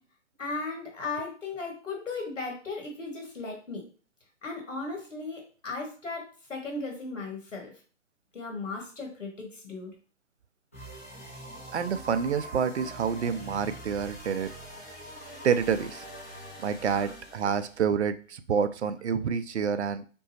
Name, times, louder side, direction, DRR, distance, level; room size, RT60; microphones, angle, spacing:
voice 1, 0.4-3.8 4.4-7.7 8.3-9.9, left 3 dB, 70° left, 1 dB, 1.7 m, -36 dB
sound 1, 10.7-17.8, right 1 dB, 10° left, 0.4 m, -44 dB
voice 2, 11.7-14.5 15.4-16.1 16.6-20.1, right 7 dB, 60° right, 13 dB, 0.5 m, -28 dB
5.3 x 2.0 x 2.8 m, 0.39 s
figure-of-eight pair, 145°, 38 cm